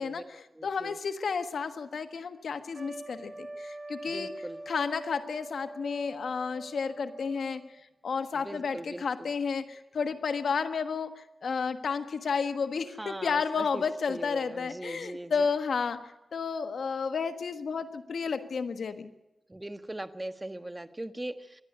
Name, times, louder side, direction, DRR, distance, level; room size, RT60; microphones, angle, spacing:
voice 1, 0.0-4.3 4.7-19.1, left 5 dB, 80° left, 8 dB, 1.4 m, -32 dB
voice 2, 0.5-1.0 4.1-4.6 8.3-9.3 13.0-15.5 19.5-21.6, right 1 dB, 20° right, 9 dB, 1.4 m, -40 dB
Trumpet, 2.7-7.8, right 2 dB, 45° right, 2.2 m, -44 dB
26.0 x 11.0 x 9.7 m, 0.97 s
cardioid pair, 55°, 0 cm